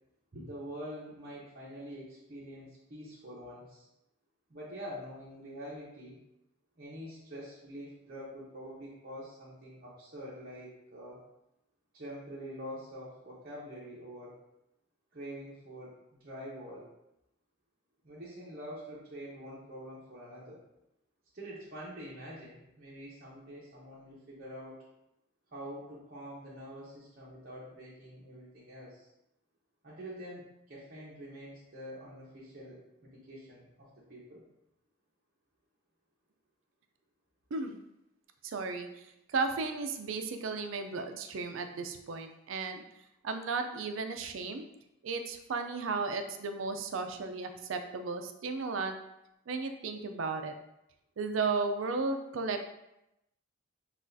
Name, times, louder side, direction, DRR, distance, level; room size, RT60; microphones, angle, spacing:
voice 1, 0.3-3.9 4.5-6.2 6.8-11.2 11.9-14.4 15.1-16.9 18.0-20.6 21.3-24.8 25.5-29.1 29.8-34.4, equal, 45° right, -8 dB, 0.9 m, -46 dB
voice 2, 38.4-42.8 43.2-44.6 45.0-49.0 49.5-50.5 51.2-52.7, right 4 dB, 75° right, 6 dB, 0.4 m, -34 dB
6.1 x 2.4 x 2.6 m, 0.86 s
head